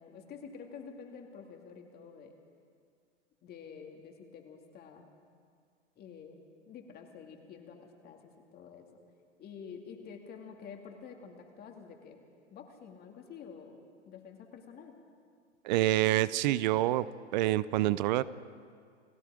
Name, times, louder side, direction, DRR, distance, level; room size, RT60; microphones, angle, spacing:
voice 1, 0.0-2.3 3.4-5.1 6.0-9.0 9.4-12.2 12.5-13.8 14.1-15.0, left 6 dB, 25° left, 3 dB, 2.5 m, -49 dB
voice 2, 15.6-17.1 17.3-18.2, right 15 dB, 40° right, 18 dB, 0.6 m, -27 dB
29.5 x 18.5 x 5.0 m, 2.1 s
hypercardioid pair, 110°, 35 cm